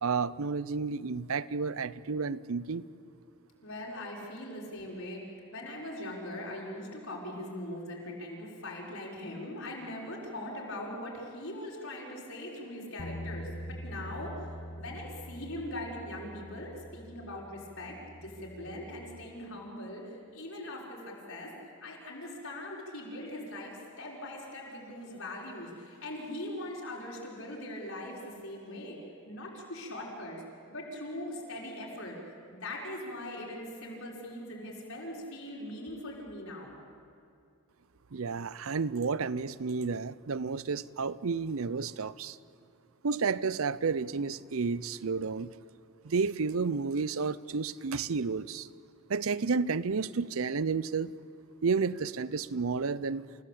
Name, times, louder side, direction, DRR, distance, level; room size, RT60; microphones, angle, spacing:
voice 1, 0.0-2.8 38.1-42.4 43.0-45.5 46.0-48.7 49.1-51.1 51.6-53.2, right 4 dB, 70° right, 18 dB, 0.6 m, -31 dB
voice 2, 3.6-30.4 30.7-36.7, left 1 dB, 65° left, -3 dB, 5.8 m, -41 dB
sound 1, 13.0-19.2, equal, 45° left, 1.0 m, -44 dB
29.5 x 16.0 x 8.6 m, 2.5 s
head